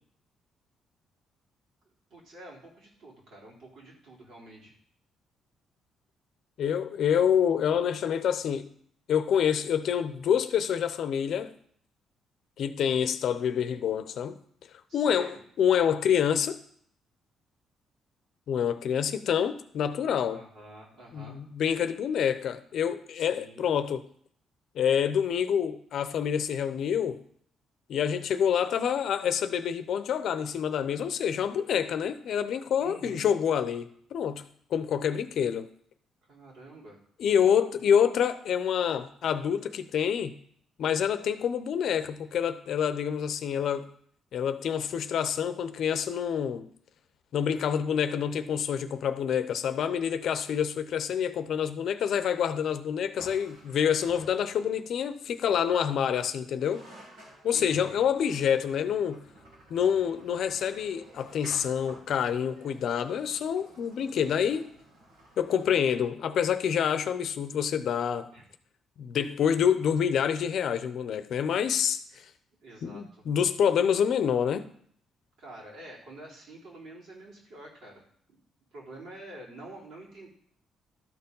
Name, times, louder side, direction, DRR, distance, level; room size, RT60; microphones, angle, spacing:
voice 1, 2.1-4.7 14.9-15.4 20.3-21.4 23.1-23.7 32.8-33.3 36.3-37.0 57.5-58.0 68.3-68.5 69.2-69.3 72.6-73.2 75.4-78.0 78.3-78.4 78.7-80.3, right 1 dB, 75° right, -4 dB, 3.8 m, -47 dB
voice 2, 6.6-8.7 9.1-11.5 12.6-14.4 14.9-16.6 18.5-20.4 21.1-24.0 24.7-27.2 27.9-34.4 34.7-35.7 37.2-40.4 40.8-43.9 44.3-46.7 47.3-56.8 57.4-59.2 59.7-64.7 65.4-68.3 69.0-72.0 72.8-74.7, left 8 dB, 70° left, 11 dB, 0.7 m, -27 dB
sound 1, 53.2-54.9 56.3-56.4 56.6-66.1, right 1 dB, 90° right, 4.0 m, -53 dB
12.5 x 4.5 x 5.4 m, 0.63 s
cardioid pair, 90°, 0 cm